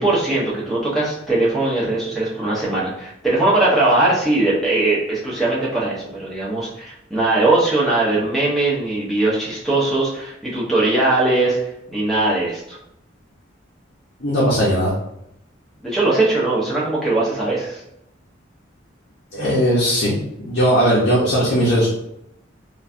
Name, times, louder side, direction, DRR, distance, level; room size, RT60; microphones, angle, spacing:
voice 1, 0.0-11.6 11.9-12.8 15.8-17.8, right 2 dB, ahead, -7 dB, 0.8 m, -20 dB
voice 2, 14.2-14.9 19.3-20.2 20.4-21.9, equal, 60° left, -6 dB, 0.7 m, -18 dB
3.1 x 2.3 x 2.5 m, 0.80 s
head